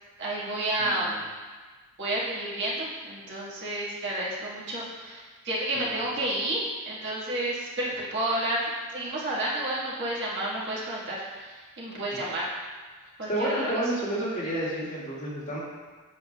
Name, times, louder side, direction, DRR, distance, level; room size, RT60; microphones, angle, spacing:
voice 1, 0.2-1.3 2.0-12.4 13.2-13.5, right 1 dB, 55° right, -7 dB, 1.6 m, -31 dB
voice 2, 0.8-1.2 5.8-6.0 12.1-12.3 13.3-15.6, right 1 dB, 35° left, -8 dB, 2.0 m, -30 dB
8.0 x 7.3 x 2.3 m, 1.4 s
head